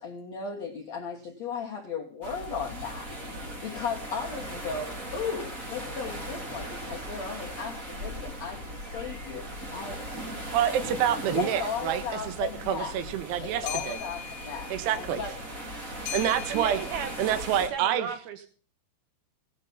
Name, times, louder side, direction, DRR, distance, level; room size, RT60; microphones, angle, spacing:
voice 1, 0.0-3.1 3.4-10.0 11.3-13.0 13.4-15.4, left 5 dB, 85° left, -1 dB, 1.5 m, -36 dB
sound 1, 2.2-17.7, right 1 dB, 35° right, 1.2 m, -39 dB
sound 2, 10.0-10.2 11.3-11.7 12.0-17.8, left 10 dB, 70° left, 2.2 m, -42 dB
voice 2, 10.5-14.0 14.7-15.2 16.1-16.8 17.2-18.1, right 10 dB, 70° right, 9 dB, 3.1 m, -27 dB
voice 3, 16.5-17.2 17.7-18.5, right 7 dB, 85° right, 8 dB, 2.2 m, -35 dB
17.5 x 10.0 x 5.4 m, 0.42 s
omnidirectional pair, 5.8 m